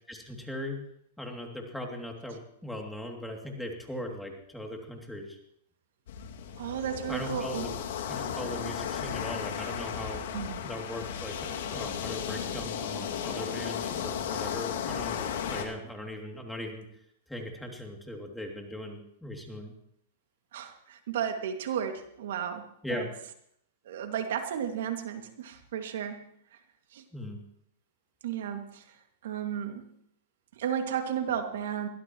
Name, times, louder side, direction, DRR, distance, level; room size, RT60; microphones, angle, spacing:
voice 1, 0.1-0.8 1.2-5.4 7.1-7.7 8.1-10.2 10.6-15.2 15.5-16.9 17.3-19.7 22.8-23.1 27.1-27.4, left 1 dB, 5° left, 1 dB, 2.8 m, -39 dB
sound 1, 6.1-15.6, left 8 dB, 75° left, 2.4 m, -35 dB
voice 2, 6.6-7.7 10.3-10.6 20.5-23.1 23.9-26.3 26.9-27.0 28.2-28.9 29.2-29.9 30.6-31.9, right 8 dB, 70° right, 5 dB, 2.2 m, -33 dB
22.5 x 16.0 x 3.1 m, 0.70 s
hypercardioid pair, 125°, 0 cm